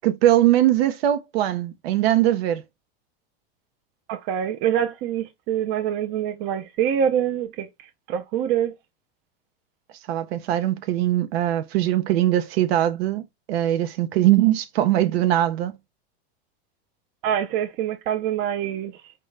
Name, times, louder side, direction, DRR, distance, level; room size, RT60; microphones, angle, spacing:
voice 1, 0.0-2.6 10.1-15.7, right 13 dB, 85° right, 0.6 m, -21 dB
voice 2, 4.1-8.7 17.2-19.1, right 9 dB, 35° right, 0.4 m, -25 dB
5.1 x 2.2 x 3.2 m
supercardioid pair, 150°, 30 cm